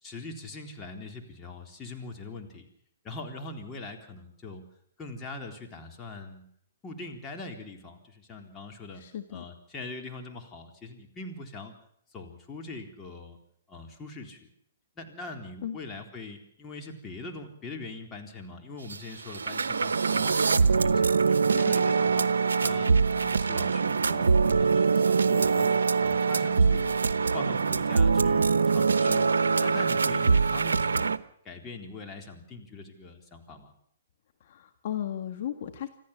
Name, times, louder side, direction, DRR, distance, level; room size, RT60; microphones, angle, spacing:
voice 1, 0.0-2.7 3.0-4.6 5.0-6.4 6.8-9.0 9.3-11.7 12.1-13.4 13.7-14.5 15.0-22.9 23.2-27.0 27.3-29.3 29.6-31.2 31.4-33.7, left 3 dB, 20° left, 2 dB, 3.8 m, -42 dB
voice 2, 9.0-9.4 15.6-15.8 34.4-35.9, left 10 dB, 55° left, 8 dB, 1.7 m, -35 dB
sound 1, 18.9-19.0 19.3-31.2, right 5 dB, 85° right, 0.9 m, -23 dB
26.5 x 15.0 x 7.4 m, 0.68 s
hypercardioid pair, 135°, 0 cm